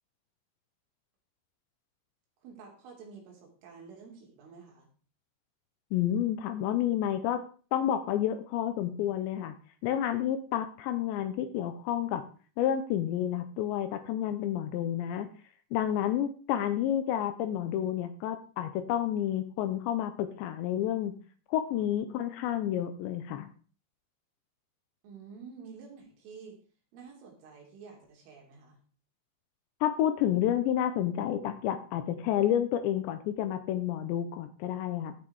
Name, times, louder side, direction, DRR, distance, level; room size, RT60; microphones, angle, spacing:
voice 1, 2.4-4.9 25.0-26.6 26.9-28.8, right 5 dB, 75° right, 0 dB, 5.6 m, -49 dB
voice 2, 5.9-7.4 7.7-9.5 9.8-12.2 12.6-15.3 15.7-21.1 21.5-23.5 29.8-35.1, left 11 dB, 80° left, 10 dB, 2.8 m, -30 dB
15.5 x 5.8 x 4.8 m, 0.40 s
omnidirectional pair, 5.7 m